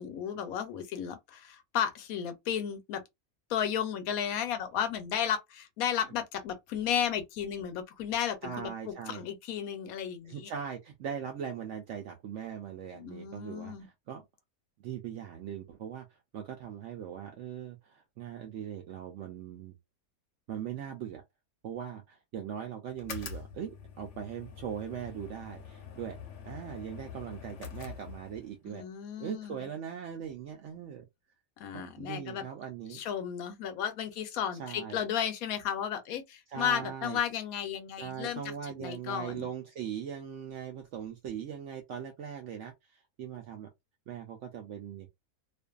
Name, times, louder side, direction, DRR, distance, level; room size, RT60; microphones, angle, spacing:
voice 1, 0.0-3.0 3.5-10.5 13.0-13.9 28.7-29.7 31.6-32.4 32.9-39.5, left 9 dB, 80° left, 1.1 m, -34 dB
voice 2, 8.4-9.2 10.3-14.2 14.8-16.1 16.3-19.7 20.5-21.2 21.6-26.2 26.4-28.8 29.2-31.0 31.7-33.0 34.6-35.0 36.5-37.2 38.0-43.7 44.1-45.1, right 8 dB, 65° right, 0.8 m, -40 dB
sound 1, 22.9-28.6, left 6 dB, 65° left, 0.9 m, -45 dB
2.5 x 2.4 x 2.3 m
omnidirectional pair, 1.5 m